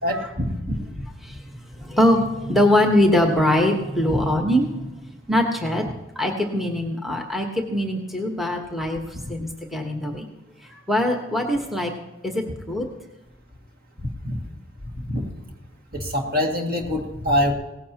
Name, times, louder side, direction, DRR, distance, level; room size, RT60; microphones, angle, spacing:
voice 1, 0.0-0.8 4.1-4.2 14.2-14.4 14.9-15.2 15.9-17.5, left 1 dB, 50° right, 1 dB, 2.2 m, -24 dB
voice 2, 1.8-4.9 5.3-5.8 6.2-9.0 9.3-10.2 10.9-11.9 12.2-12.3 12.7-12.9, left 1 dB, ahead, 2 dB, 1.3 m, -22 dB
18.0 x 15.5 x 2.9 m, 1.0 s
head